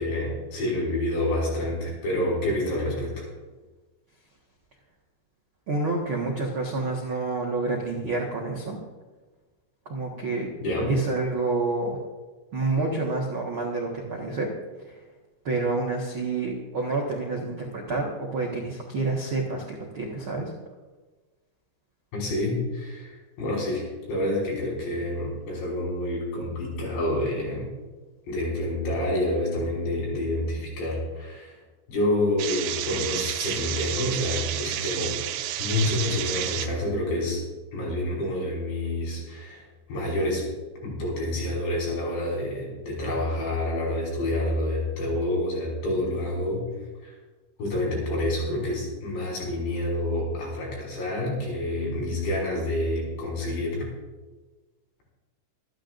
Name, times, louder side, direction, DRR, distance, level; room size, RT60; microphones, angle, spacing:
voice 1, 0.0-3.3 10.6-11.0 22.1-27.7 28.3-31.6 31.9-35.2 35.6-37.4 37.7-40.4 40.8-46.7 47.0-47.1 47.6-53.9, left 1 dB, 75° left, -4 dB, 7.8 m, -28 dB
voice 2, 5.7-8.8 9.8-10.5 10.9-12.0 12.5-14.5 14.8-15.0 15.4-20.5, right 3 dB, 75° right, -2 dB, 1.2 m, -28 dB
Locker room shower pan left, 32.4-36.7, right 12 dB, 90° right, 3.0 m, -30 dB
26.5 x 11.0 x 2.6 m, 1.3 s
omnidirectional pair, 5.1 m